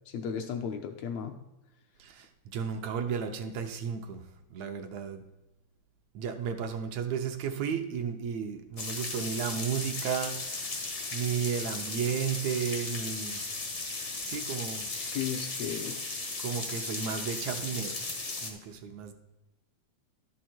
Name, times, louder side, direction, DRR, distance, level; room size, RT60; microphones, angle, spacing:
voice 1, 0.1-1.4 14.9-16.0, left 7 dB, 75° left, 6 dB, 1.7 m, -35 dB
voice 2, 2.0-4.2 4.5-5.2 6.2-13.4 14.2-14.9 16.4-18.0 18.4-19.1, right 7 dB, 75° right, 5 dB, 1.9 m, -33 dB
sound 1, 8.8-18.5, left 3 dB, 50° left, 0.8 m, -36 dB
11.5 x 6.4 x 4.3 m, 1.0 s
omnidirectional pair, 3.5 m